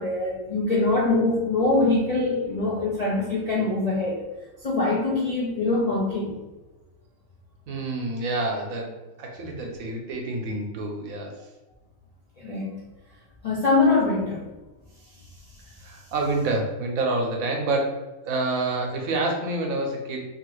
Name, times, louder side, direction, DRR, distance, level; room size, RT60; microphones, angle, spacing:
voice 1, 0.0-4.2 4.6-6.4 9.6-9.7 12.4-12.8 13.4-14.4, left 3 dB, 65° left, -5 dB, 0.4 m, -23 dB
voice 2, 7.7-11.3 15.8-20.2, right 2 dB, 85° right, 1 dB, 1.1 m, -28 dB
2.8 x 2.4 x 3.0 m, 1.1 s
omnidirectional pair, 1.4 m